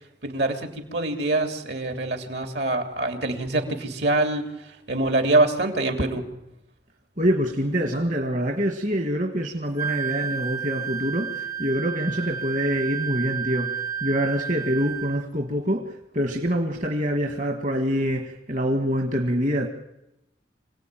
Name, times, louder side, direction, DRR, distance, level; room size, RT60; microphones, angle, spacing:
voice 1, 0.2-4.5 4.9-6.3, right 2 dB, 70° right, 6 dB, 2.9 m, -24 dB
voice 2, 7.2-19.7, equal, 45° right, 4 dB, 1.6 m, -25 dB
Wind instrument woodwind instrument, 9.8-15.2, right 8 dB, 20° right, 0.8 m, -31 dB
26.0 x 17.5 x 9.1 m, 0.90 s
head